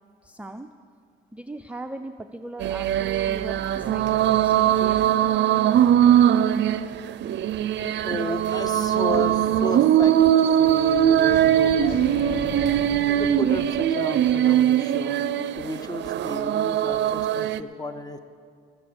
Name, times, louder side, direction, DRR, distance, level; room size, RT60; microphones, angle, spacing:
voice 1, 0.2-0.7 1.3-5.1, right 2 dB, 5° right, 6 dB, 0.4 m, -39 dB
sound 1, 2.6-17.6, right 10 dB, 65° right, 0.5 m, -21 dB
voice 2, 8.0-12.1 13.1-15.2 15.6-18.2, left 1 dB, 20° left, 9 dB, 0.9 m, -33 dB
sound 2, 10.6-14.6, left 3 dB, 35° left, 1.8 m, -39 dB
20.0 x 7.0 x 6.9 m, 2.2 s
cardioid pair, 90°, 20 cm